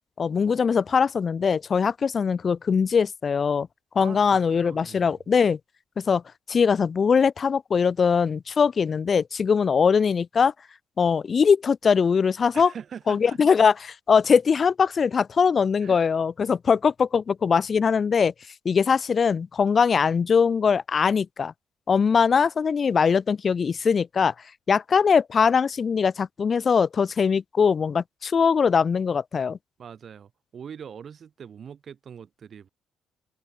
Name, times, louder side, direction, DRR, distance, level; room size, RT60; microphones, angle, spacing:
voice 1, 0.2-3.7 3.9-5.6 6.0-6.2 6.5-10.5 11.0-12.7 13.1-18.3 18.6-21.5 21.9-24.3 24.7-29.6, left 6 dB, 45° left, 1.1 m, -21 dB
voice 2, 4.0-5.2 12.5-13.4 15.8-16.0 29.8-32.7, right 7 dB, 55° right, 6.2 m, -42 dB
cardioid pair, 90°, 0 cm